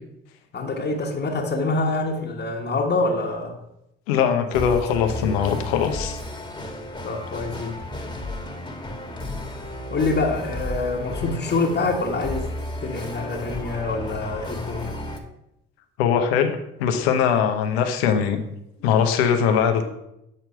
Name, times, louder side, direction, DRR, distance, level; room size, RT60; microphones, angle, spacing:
voice 1, 0.5-3.6 5.2-5.3 7.0-7.8 9.9-12.5 12.8-15.0, left 3 dB, 35° left, 0 dB, 1.4 m, -26 dB
voice 2, 4.1-6.2 11.2-11.4 16.0-18.4 18.8-19.8, left 7 dB, 85° left, 6 dB, 0.9 m, -21 dB
sound 1, 4.5-15.2, left 1 dB, 15° left, 1.6 m, -33 dB
8.0 x 4.5 x 5.7 m, 0.84 s
hypercardioid pair, 50°, 30 cm